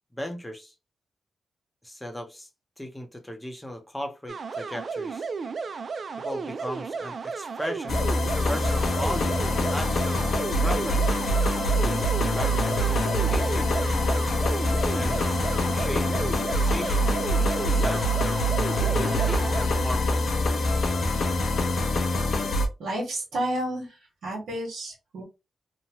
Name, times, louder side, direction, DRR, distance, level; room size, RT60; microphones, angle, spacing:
voice 1, 0.1-0.7 1.8-2.5 2.8-5.3 6.2-8.1 8.5-10.3 10.6-11.5 12.3-13.7 14.7-18.2 18.7-20.5, left 1 dB, 5° left, 0.7 m, -37 dB
sound 1, 4.3-19.7, right 5 dB, 55° right, 0.3 m, -33 dB
sound 2, 7.9-22.7, left 1 dB, 70° left, 0.6 m, -24 dB
voice 2, 22.8-23.9 24.2-25.2, right 1 dB, 85° right, 1.3 m, -30 dB
2.8 x 2.2 x 2.9 m
cardioid pair, 95°, 0 cm